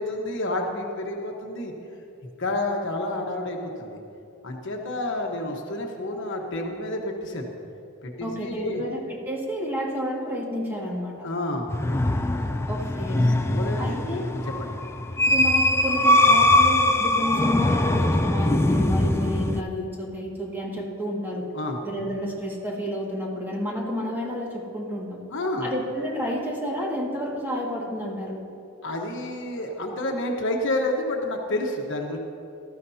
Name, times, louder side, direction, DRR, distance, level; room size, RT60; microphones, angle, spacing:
voice 1, 0.0-1.7 2.2-4.0 4.4-7.5 8.0-8.8 11.2-11.7 12.3-12.6 13.2-14.2 14.6-14.8 21.5-21.8 25.3-25.7 28.8-32.2, left 1 dB, 60° left, 1 dB, 1.2 m, -29 dB
voice 2, 8.2-11.1 12.7-13.2 13.8-14.3 15.3-21.5 21.8-25.2 25.6-28.4, equal, 10° right, -4 dB, 2.0 m, -30 dB
sound 1, 11.7-19.6, left 1 dB, 10° left, 0.4 m, -21 dB
19.0 x 13.5 x 2.8 m, 2.8 s
head